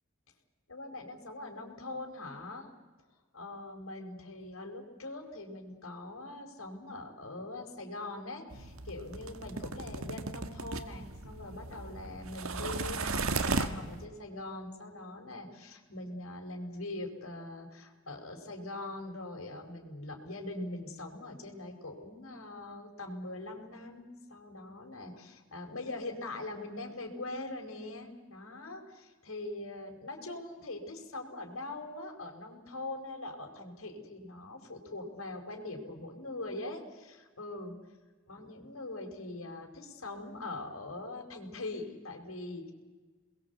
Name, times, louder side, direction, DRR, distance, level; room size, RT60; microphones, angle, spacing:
voice 1, 0.7-2.7 3.3-37.8 38.3-42.7, left 2 dB, 85° left, 2 dB, 4.8 m, -42 dB
sound 1, 8.5-14.1, right 3 dB, 85° right, 1.8 m, -36 dB
29.0 x 21.5 x 8.3 m, 1.3 s
head